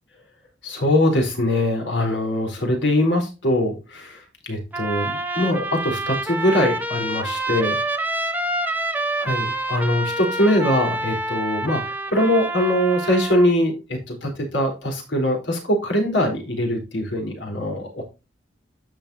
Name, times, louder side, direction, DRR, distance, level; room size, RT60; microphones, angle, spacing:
voice 1, 0.6-7.8 9.2-18.0, left 1 dB, 80° left, 2 dB, 3.8 m, -22 dB
Trumpet, 4.7-13.5, right 1 dB, 10° right, 0.9 m, -27 dB
10.5 x 7.1 x 2.7 m, 0.28 s
head